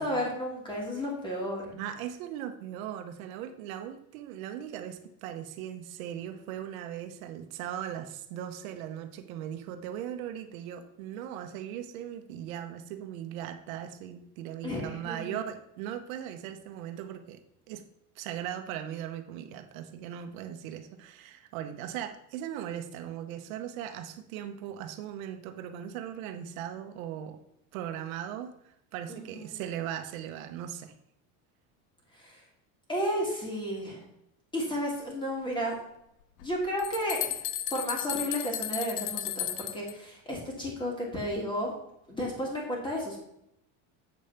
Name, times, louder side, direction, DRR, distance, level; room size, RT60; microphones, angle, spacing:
voice 1, 0.0-1.7 14.6-15.4 29.1-29.6 32.1-32.4 32.9-34.0 34.5-35.8 36.4-37.4 37.7-41.7 42.1-43.3, equal, 10° left, -2 dB, 2.8 m, -33 dB
voice 2, 1.7-17.4 17.7-17.8 18.1-27.4 27.7-30.9, right 10 dB, 85° right, 8 dB, 1.1 m, -39 dB
sound 1, 36.4-39.9, left 12 dB, 65° left, 0.9 m, -34 dB
8.1 x 5.2 x 5.7 m, 0.80 s
cardioid pair, 150°, 40 cm